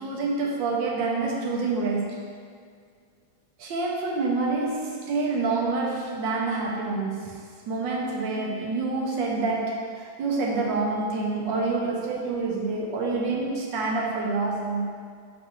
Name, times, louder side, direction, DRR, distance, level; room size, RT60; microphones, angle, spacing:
voice 1, 0.0-2.3 3.6-7.4 7.7-14.9, right 3 dB, 65° right, -2 dB, 1.4 m, -27 dB
6.0 x 5.7 x 3.1 m, 2.1 s
omnidirectional pair, 2.3 m